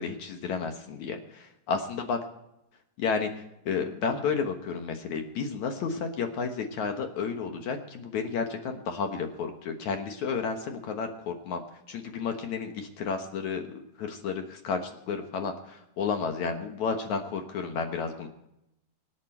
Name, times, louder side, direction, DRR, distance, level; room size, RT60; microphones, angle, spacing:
voice 1, 0.0-2.2 3.0-11.6 11.9-18.3, left 5 dB, 60° left, 5 dB, 2.1 m, -32 dB
25.0 x 9.1 x 4.4 m, 0.84 s
omnidirectional pair, 4.6 m